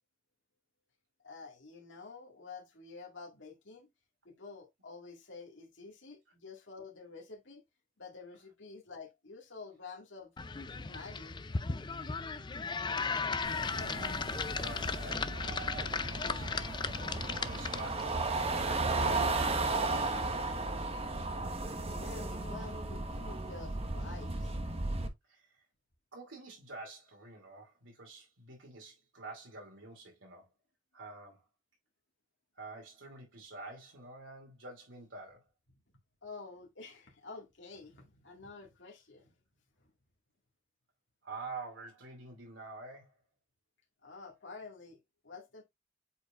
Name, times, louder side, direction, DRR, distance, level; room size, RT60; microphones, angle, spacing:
voice 1, 1.2-3.9 4.3-7.6 8.0-10.3 10.9-11.3 21.9-24.5 36.2-39.3 44.0-45.0 45.2-45.6, left 4 dB, 70° left, 2.0 m, -49 dB
sound 1, 10.4-18.1, left 4 dB, 25° left, 0.4 m, -36 dB
sound 2, 13.4-25.1, right 3 dB, 30° right, 1.0 m, -35 dB
voice 2, 13.8-14.3 14.5-16.8 17.1-20.1 25.3-25.6 26.1-30.5 30.9-31.5 32.6-35.4 41.2-43.2, right 3 dB, 75° right, 2.5 m, -48 dB
8.2 x 4.7 x 2.4 m
head